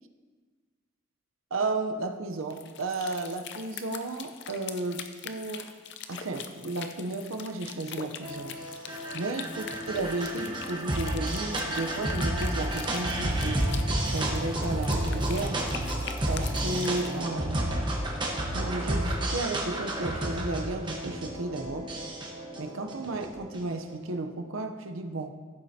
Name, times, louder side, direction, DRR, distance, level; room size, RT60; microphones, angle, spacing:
voice 1, 1.5-5.7 6.1-8.5 9.1-13.8 14.1-15.6 16.3-17.7 18.5-21.9 22.6-25.3, right 2 dB, 80° right, 6 dB, 0.7 m, -33 dB
sound 1, 2.4-17.2, left 7 dB, 55° left, 0.6 m, -43 dB
sound 2, 8.2-23.7, right 1 dB, 20° right, 1.2 m, -31 dB
15.0 x 7.5 x 2.8 m, 1.5 s
head